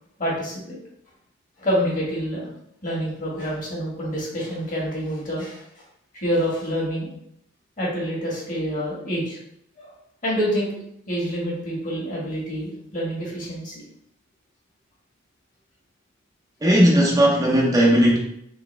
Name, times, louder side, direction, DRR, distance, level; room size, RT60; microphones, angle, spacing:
voice 1, 0.2-0.8 1.6-2.5 2.8-5.6 6.1-7.1 7.8-9.4 9.8-9.9 10.2-10.7 11.1-13.8, equal, 40° left, -5 dB, 1.7 m, -27 dB
voice 2, 16.6-18.2, equal, 15° right, -3 dB, 0.6 m, -16 dB
4.0 x 3.3 x 3.3 m, 0.74 s
head